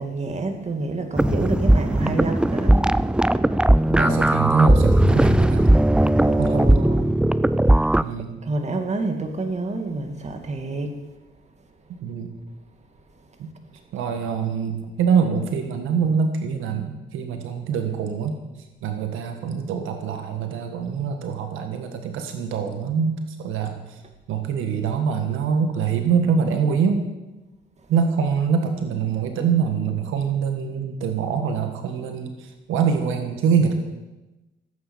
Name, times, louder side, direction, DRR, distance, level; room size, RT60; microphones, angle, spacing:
voice 1, 0.0-2.9 6.2-7.1 7.7-7.9 8.4-11.0, right 3 dB, 35° right, 5 dB, 2.4 m, -28 dB
sound 1, 1.2-8.0, right 1 dB, 5° right, 0.4 m, -18 dB
voice 2, 3.9-5.7 6.4-6.8 8.0-8.4 12.0-12.4 13.4-13.5 13.9-18.4 18.8-24.0 24.3-27.1 27.9-33.7, right 6 dB, 90° right, 5 dB, 1.7 m, -24 dB
16.0 x 8.8 x 7.2 m, 1.1 s
cardioid pair, 90°, 20 cm